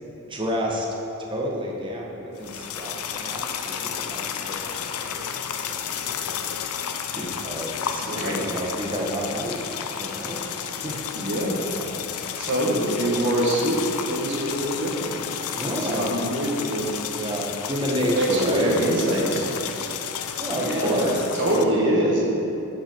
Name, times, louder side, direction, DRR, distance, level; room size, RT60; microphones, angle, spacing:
voice 1, 0.2-0.9 1.3-6.3 7.1-9.7 9.9-10.4 10.8-11.0 11.7-12.2 15.5-16.1 17.1-18.8 19.4-19.5 20.4-21.3, equal, 20° right, -1 dB, 1.0 m, -30 dB
sound 1, 2.4-21.6, left 8 dB, 90° left, 0.5 m, -32 dB
voice 2, 8.0-8.4 11.1-11.6 12.4-16.9 18.1-19.5 20.5-22.2, right 1 dB, 55° right, -3 dB, 1.6 m, -25 dB
10.5 x 6.1 x 4.4 m, 3.0 s
head